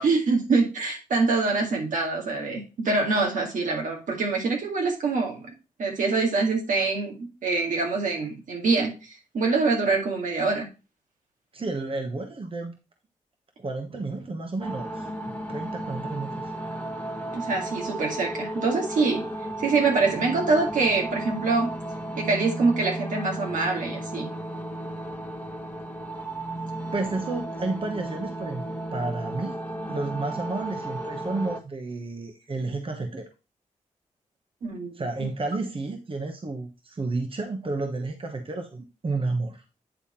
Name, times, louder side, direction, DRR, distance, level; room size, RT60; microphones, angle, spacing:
voice 1, 0.0-5.5 5.8-10.7 17.3-19.3 19.6-21.7 22.2-24.3 34.6-35.3, right 3 dB, 75° right, 0 dB, 2.1 m, -25 dB
voice 2, 11.5-12.7 13.6-16.5 26.9-29.6 29.9-33.3 34.9-39.6, right 3 dB, 40° right, 4 dB, 1.2 m, -31 dB
sound 1, 14.6-31.6, right 1 dB, 15° left, 1.4 m, -34 dB
9.2 x 3.5 x 4.3 m, 0.29 s
cardioid pair, 50°, 13 cm